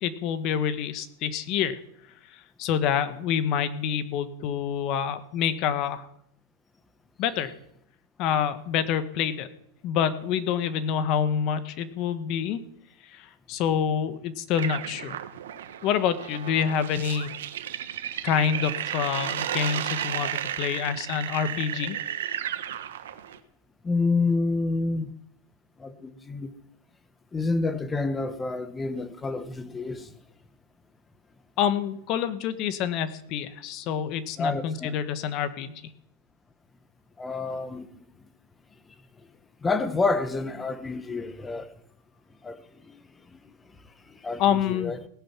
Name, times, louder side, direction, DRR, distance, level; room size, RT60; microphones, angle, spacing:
voice 1, 0.0-1.8 2.3-6.1 7.2-7.5 8.2-9.5 9.8-12.6 13.1-15.2 15.8-17.3 18.2-22.0 31.6-35.8 44.4-44.9, left 8 dB, 40° left, 1.2 m, -27 dB
sound 1, 14.5-23.4, right 10 dB, 85° right, 1.4 m, -33 dB
voice 2, 23.8-25.1 25.8-26.5 27.3-30.1 34.4-35.0 37.2-37.9 39.6-41.7 42.4-42.6 42.9-43.0 44.2-45.0, left 3 dB, 10° left, 1.1 m, -28 dB
17.5 x 10.0 x 6.0 m
supercardioid pair, 145°, 0 cm